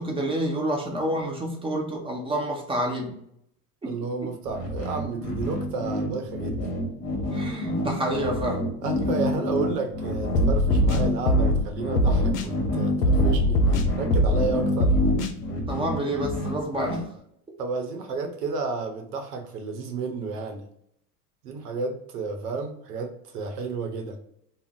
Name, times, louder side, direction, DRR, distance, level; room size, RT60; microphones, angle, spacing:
voice 1, 0.0-3.1 3.8-3.9 7.3-8.7 15.7-17.0, right 1 dB, 10° right, 0 dB, 0.7 m, -28 dB
voice 2, 3.8-6.7 8.8-13.7 13.9-15.0 17.6-20.6 21.4-24.3, right 4 dB, 85° right, 5 dB, 0.7 m, -31 dB
sound 1, 4.5-17.0, left 1 dB, 35° left, 1.1 m, -28 dB
sound 2, 10.3-11.6 11.9-12.5 13.0-14.5 14.8-15.3, left 1 dB, 90° left, 0.5 m, -21 dB
2.5 x 2.0 x 3.5 m, 0.72 s
hypercardioid pair, 85°, 46 cm